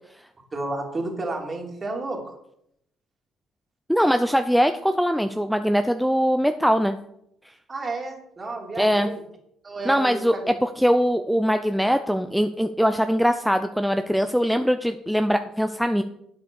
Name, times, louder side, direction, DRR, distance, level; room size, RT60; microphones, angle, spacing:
voice 1, 0.5-2.3 7.7-9.2 9.6-10.5, right 2 dB, 35° right, 2 dB, 3.0 m, -31 dB
voice 2, 3.9-7.0 8.8-9.1 9.9-10.3 10.6-16.0, equal, ahead, 8 dB, 0.6 m, -22 dB
8.4 x 8.0 x 6.4 m, 0.76 s
supercardioid pair, 75°, 0 cm